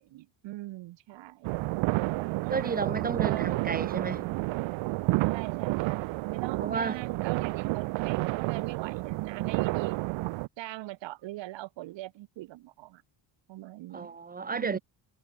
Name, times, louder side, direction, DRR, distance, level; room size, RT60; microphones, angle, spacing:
voice 1, 0.0-1.6 2.0-2.8 3.2-4.0 5.3-10.0 10.6-13.0 13.5-14.2 14.5-14.8, right 17 dB, 70° right, 6.2 m, -41 dB
sound 1, 1.4-10.5, right 22 dB, 85° right, 1.1 m, -30 dB
voice 2, 2.5-4.3 6.6-7.0 13.9-14.8, right 5 dB, 20° right, 1.8 m, -32 dB
cardioid pair, 175°, 46 cm